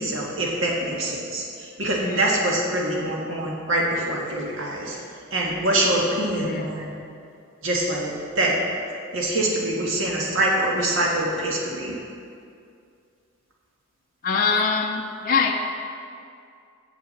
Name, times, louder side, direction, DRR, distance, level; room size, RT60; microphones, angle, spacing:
voice 1, 0.0-5.0 5.3-7.0 7.6-8.6 9.1-12.0, right 1 dB, 60° right, -2 dB, 1.7 m, -24 dB
voice 2, 6.3-6.7 14.2-15.5, left 5 dB, 40° left, 1 dB, 0.5 m, -23 dB
7.5 x 5.8 x 7.5 m, 2.4 s
head